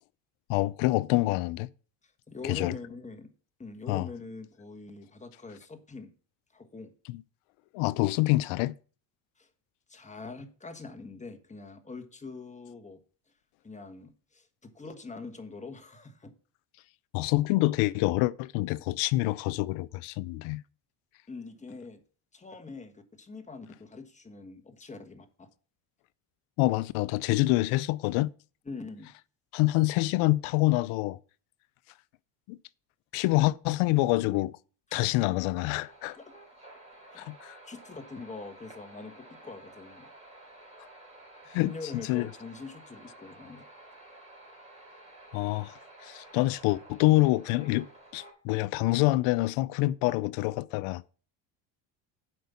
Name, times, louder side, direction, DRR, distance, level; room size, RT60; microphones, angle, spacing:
voice 1, 0.5-1.7 2.4-2.7 3.9-4.1 7.1-7.2 7.7-8.7 17.1-20.6 26.6-28.3 29.5-31.2 32.5-32.6 33.1-34.6 34.9-36.2 37.2-37.6 41.5-41.7 42.1-42.3 45.3-47.9 48.1-51.1, left 19 dB, 85° left, 0.6 m, -26 dB
voice 2, 2.3-3.3 3.6-6.1 6.5-6.9 9.4-9.5 9.9-13.0 13.6-16.3 21.3-22.0 22.3-25.5 28.6-29.1 34.9-35.3 36.2-36.3 37.1-37.3 37.7-40.1 41.5-43.6, left 3 dB, 15° left, 1.3 m, -44 dB
sound 1, 35.8-48.3, right 2 dB, 15° right, 3.7 m, -52 dB
7.8 x 5.3 x 6.9 m
cardioid pair, 115°, 47 cm